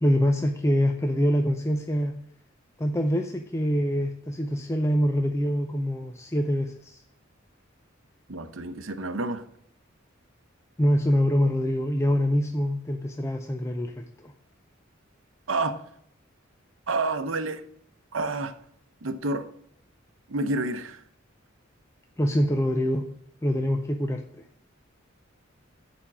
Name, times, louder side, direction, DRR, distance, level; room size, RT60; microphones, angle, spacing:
voice 1, 0.0-2.1 2.8-7.0 10.8-14.3 22.2-23.1 23.4-24.4, equal, 15° left, 4 dB, 0.5 m, -25 dB
voice 2, 8.3-9.4 15.5-15.8 16.9-17.6 18.1-18.5 19.0-19.5 20.3-21.0, right 2 dB, 85° right, 11 dB, 0.8 m, -29 dB
7.1 x 5.2 x 7.2 m, 0.67 s
head